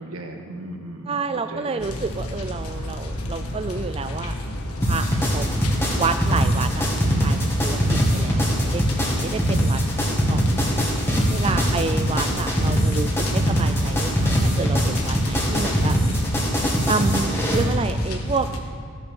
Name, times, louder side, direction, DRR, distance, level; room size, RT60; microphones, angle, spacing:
voice 1, 0.0-1.9 11.5-12.1, right 1 dB, 75° right, 3 dB, 1.7 m, -36 dB
voice 2, 1.1-4.3 4.9-5.1 5.3-5.5 6.0-6.9 7.2-7.4 7.6-7.8 8.1-9.8 10.1-10.4 11.3-16.0 16.8-18.5, right 4 dB, 25° right, 9 dB, 0.3 m, -29 dB
sound 1, 1.8-18.6, left 1 dB, 85° left, 1.6 m, -31 dB
sound 2, 4.8-17.6, equal, 10° left, 2.2 m, -22 dB
15.5 x 10.0 x 6.4 m, 2.6 s
head